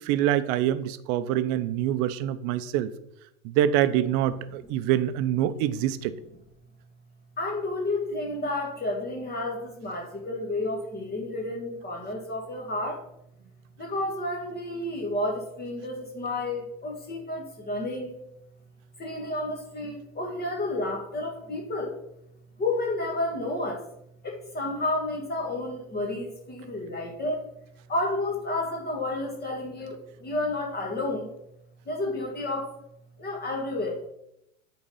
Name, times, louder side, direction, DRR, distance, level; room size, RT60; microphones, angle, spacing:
voice 1, 0.0-2.9 3.4-6.1, right 11 dB, 45° right, 14 dB, 0.7 m, -25 dB
voice 2, 7.4-13.0 13.8-18.2 19.0-22.0 22.6-23.8 24.2-27.5 27.9-31.3 31.8-32.8 33.2-34.0, left 2 dB, 25° left, 0 dB, 1.5 m, -31 dB
8.5 x 3.9 x 5.6 m, 0.80 s
hypercardioid pair, 115°, 41 cm